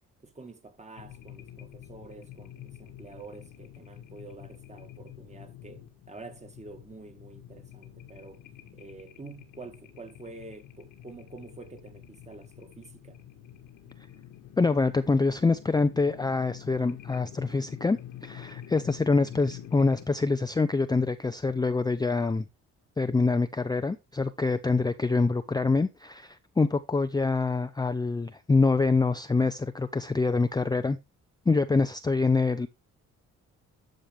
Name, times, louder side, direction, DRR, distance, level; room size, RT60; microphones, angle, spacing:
voice 1, 0.2-8.5 8.7-13.2, right 3 dB, 20° right, 1.8 m, -47 dB
sound 1, 0.9-20.1, left 11 dB, 85° left, 1.8 m, -47 dB
voice 2, 14.6-22.4 23.0-31.0 31.5-32.7, left 3 dB, 15° left, 0.5 m, -25 dB
11.5 x 5.1 x 3.4 m
cardioid pair, 90°, 30 cm